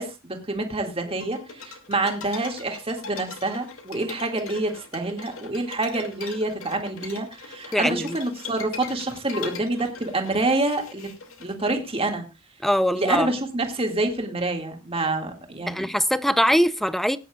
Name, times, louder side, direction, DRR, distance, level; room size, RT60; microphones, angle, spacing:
voice 1, 0.0-11.1 11.4-12.2 12.9-15.9, right 2 dB, 25° right, 2.1 m, -27 dB
sound 1, 1.2-11.7, left 5 dB, 75° left, 2.4 m, -40 dB
voice 2, 7.7-8.2 12.6-13.3 15.7-17.2, equal, ahead, 0.5 m, -22 dB
20.0 x 9.8 x 2.4 m
head